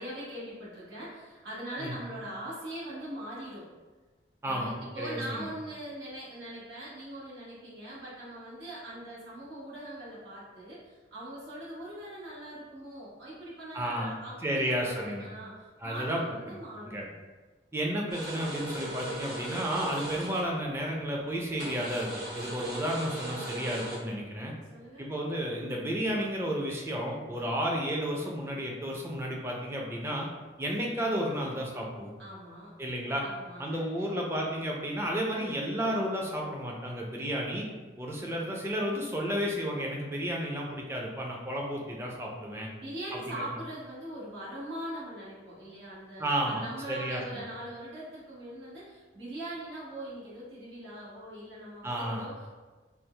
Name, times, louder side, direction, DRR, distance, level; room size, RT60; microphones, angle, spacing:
voice 1, 0.0-3.7 4.4-17.0 24.7-25.0 32.2-32.7 33.2-34.1 42.7-52.5, right 1 dB, 75° right, -8 dB, 1.5 m, -41 dB
voice 2, 4.4-5.5 13.7-14.1 14.4-15.3 15.8-16.2 16.5-16.6 16.8-17.0 17.7-22.1 22.3-24.5 25.0-30.3 30.6-32.1 32.8-33.2 33.6-37.7 38.0-42.7 43.3-43.4 46.2-47.2 51.8-52.5, equal, 15° right, -2 dB, 0.4 m, -32 dB
sound 1, 18.1-20.5 21.6-24.0, right 1 dB, 60° right, 1.2 m, -38 dB
4.5 x 2.1 x 3.2 m, 1.3 s
head